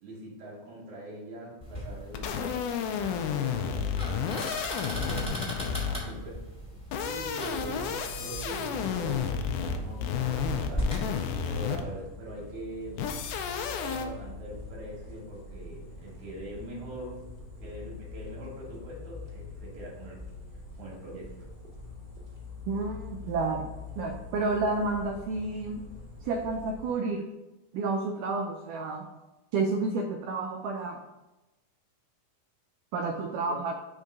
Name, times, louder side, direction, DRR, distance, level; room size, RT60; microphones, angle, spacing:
voice 1, 0.0-6.4 7.0-11.1 11.4-13.0 13.4-17.3 17.6-20.2 20.8-21.5 33.5-33.6, right 1 dB, 60° right, -3 dB, 2.4 m, -43 dB
sound 1, 1.6-11.1, equal, 15° left, 0.8 m, -38 dB
sound 2, 2.1-6.2 6.8-12.0 13.0-14.1, left 7 dB, 85° left, 1.9 m, -31 dB
sound 3, 8.7-26.9, left 4 dB, 15° right, 0.7 m, -44 dB
voice 2, 22.7-25.9 26.3-27.2 27.7-29.1 29.5-31.0 32.9-33.7, right 3 dB, 85° right, 3 dB, 1.8 m, -30 dB
5.6 x 3.6 x 5.2 m, 1.0 s
omnidirectional pair, 4.1 m